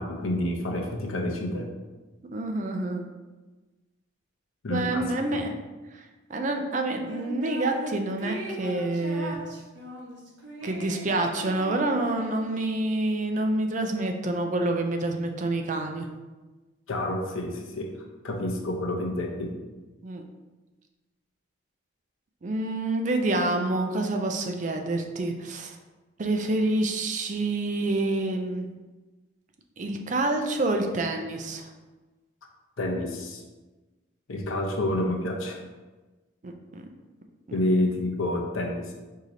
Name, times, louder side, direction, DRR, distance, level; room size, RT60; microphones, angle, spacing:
voice 1, 0.0-1.7 4.6-5.0 16.9-17.9 18.2-19.5 32.8-33.4 34.3-35.6 37.5-38.9, left 1 dB, 90° left, 1 dB, 0.7 m, -28 dB
voice 2, 2.3-3.0 4.7-5.5 5.9-6.0 6.3-9.4 10.6-16.1 20.0-20.2 22.4-25.8 26.2-28.7 29.8-31.7 36.4-36.8 37.5-37.6, right 2 dB, 40° right, 4 dB, 0.4 m, -27 dB
sound 1, 7.1-7.9 8.2-12.8, right 1 dB, 60° right, 0.9 m, -39 dB
4.7 x 2.8 x 3.8 m, 1.2 s
head